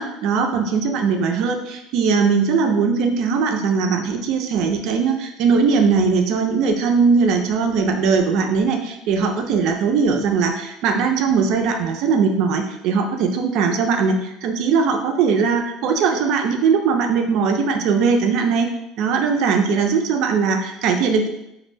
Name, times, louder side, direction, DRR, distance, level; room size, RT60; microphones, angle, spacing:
voice 1, 0.0-18.7 19.0-21.3, right 5 dB, 60° right, 4 dB, 0.3 m, -20 dB
2.2 x 2.1 x 3.2 m, 0.86 s
cardioid pair, 140°, 0 cm